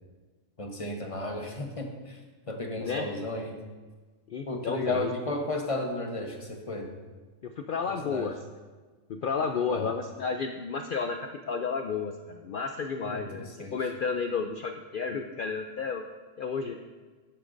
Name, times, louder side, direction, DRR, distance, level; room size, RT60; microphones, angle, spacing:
voice 1, 0.6-2.2 2.5-3.6 4.5-6.9 7.9-8.3 9.6-9.9 13.0-13.8, left 2 dB, 30° left, 3 dB, 0.9 m, -34 dB
voice 2, 4.3-5.2 7.6-8.3 9.1-11.2 11.5-16.0 16.4-16.7, left 5 dB, 65° left, 5 dB, 0.5 m, -32 dB
11.0 x 8.9 x 2.6 m, 1.4 s
omnidirectional pair, 1.4 m